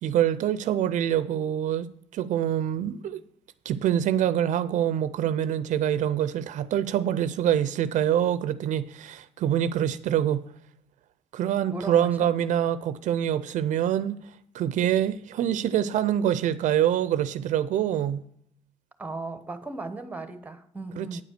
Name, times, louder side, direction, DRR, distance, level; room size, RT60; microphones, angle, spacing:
voice 1, 0.0-3.2 3.7-10.5 11.3-14.2 14.5-18.2 21.0-21.2, right 10 dB, 70° right, 0.5 m, -25 dB
voice 2, 11.7-12.3 19.0-21.2, right 3 dB, 10° right, 1.0 m, -36 dB
9.5 x 5.0 x 6.7 m
cardioid pair, 105°, 13 cm